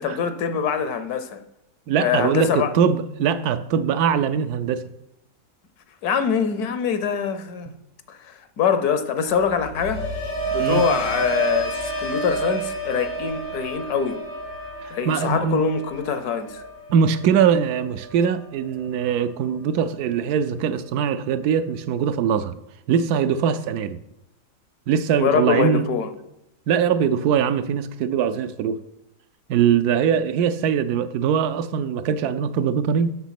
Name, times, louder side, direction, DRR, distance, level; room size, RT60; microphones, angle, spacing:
voice 1, 0.0-1.4 2.0-2.7 6.0-7.7 8.1-10.1 10.5-14.2 14.9-16.6 25.2-26.1, left 7 dB, 70° left, 1.3 m, -24 dB
voice 2, 1.9-4.9 10.6-10.8 14.8-15.6 16.9-22.6 22.9-24.0 24.9-25.9 26.7-28.8 29.5-33.1, right 7 dB, 75° right, 1.1 m, -22 dB
sound 1, 9.4-19.5 19.8-20.3, right 3 dB, 90° left, 2.9 m, -31 dB
8.1 x 6.5 x 5.8 m
omnidirectional pair, 1.7 m